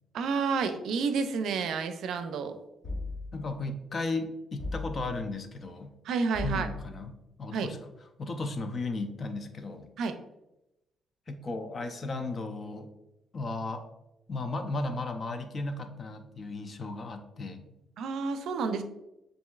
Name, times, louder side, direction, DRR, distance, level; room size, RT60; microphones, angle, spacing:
voice 1, 0.1-2.6 6.0-6.7 7.5-7.7 10.0-10.2 18.0-18.8, right 5 dB, 75° right, 8 dB, 0.4 m, -30 dB
sound 1, 2.8-3.6 4.6-5.3 6.3-7.1, left 2 dB, 60° left, 1.5 m, -37 dB
voice 2, 3.3-6.0 6.4-7.8 8.2-9.9 11.3-12.9 13.3-13.8 14.3-17.7, left 2 dB, 40° left, 7 dB, 0.6 m, -35 dB
7.1 x 2.7 x 2.4 m, 0.93 s
cardioid pair, 90°, 0 cm